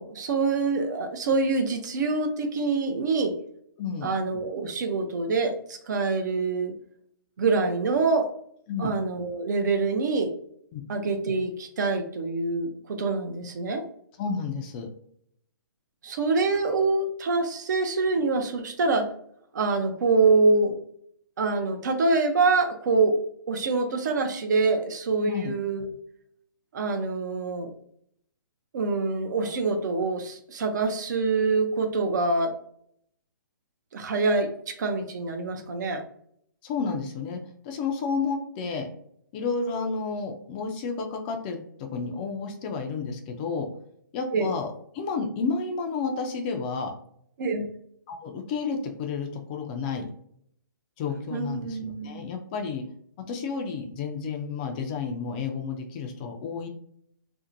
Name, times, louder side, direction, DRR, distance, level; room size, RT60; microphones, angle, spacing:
voice 1, 0.0-3.3 4.0-6.7 7.4-8.3 8.8-10.3 10.9-13.8 16.0-19.1 19.5-20.7 21.4-25.9 26.7-27.7 28.7-32.5 33.9-36.0 44.3-44.5 47.4-47.7 51.3-52.2, right 3 dB, 55° right, 6 dB, 0.5 m, -25 dB
voice 2, 3.8-4.1 8.7-8.9 10.7-10.8 14.2-14.9 25.3-25.5 36.6-37.4 37.6-38.9 39.3-43.7 44.1-44.7 44.9-46.9 48.1-50.1 51.0-52.8 53.3-56.7, left 5 dB, 25° left, 3 dB, 0.3 m, -31 dB
2.6 x 2.1 x 2.5 m, 0.68 s
hypercardioid pair, 140°, 12 cm